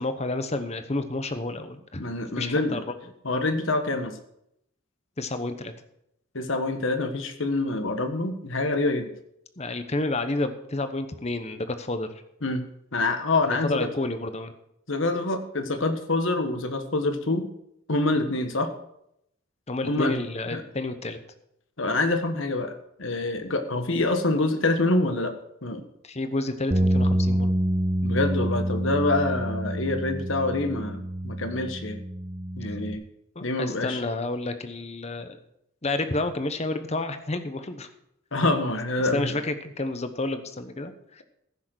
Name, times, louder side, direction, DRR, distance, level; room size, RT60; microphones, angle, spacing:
voice 1, 0.0-2.0 2.4-2.8 5.2-5.7 9.6-12.2 13.5-14.5 19.7-21.2 26.0-27.5 32.6-32.8 33.3-35.4 35.8-37.9 39.1-41.2, left 2 dB, 30° left, 9 dB, 0.9 m, -30 dB
voice 2, 2.0-2.8 3.2-4.2 6.3-9.1 12.4-12.6 12.9-13.9 14.9-17.5 17.9-18.7 19.8-20.1 20.5-20.6 21.8-22.7 23.0-25.3 25.6-25.8 28.0-32.0 32.6-33.0 33.4-34.0 38.3-39.4, left 2 dB, 65° left, 7 dB, 1.4 m, -26 dB
sound 1, 26.7-33.0, right 1 dB, 25° right, 0.9 m, -27 dB
15.0 x 6.4 x 6.3 m, 0.77 s
head